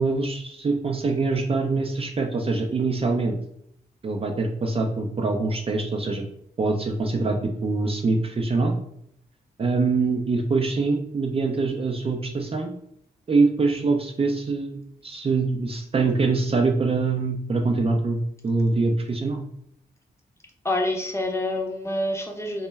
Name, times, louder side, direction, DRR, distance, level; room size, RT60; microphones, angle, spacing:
voice 1, 0.0-3.4 4.0-6.2 6.6-8.7 9.6-12.7 13.3-14.8 15.0-19.4, right 3 dB, 35° right, 2 dB, 0.4 m, -24 dB
voice 2, 20.6-22.7, left 1 dB, 15° left, 1 dB, 0.6 m, -27 dB
2.1 x 2.1 x 3.2 m, 0.71 s
cardioid pair, 60°, 17 cm